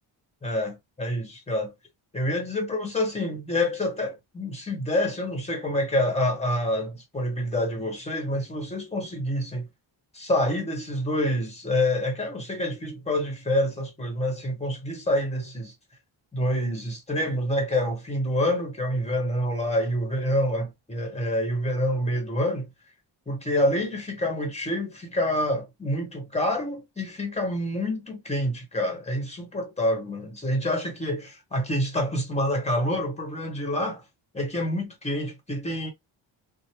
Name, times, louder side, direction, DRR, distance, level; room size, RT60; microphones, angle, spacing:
voice 1, 0.4-1.7 2.1-9.6 10.1-15.7 16.3-22.7 23.3-34.0 34.3-35.9, left 1 dB, 15° left, 1.2 m, -27 dB
3.1 x 2.2 x 3.0 m
wide cardioid pair, 115°, 46 cm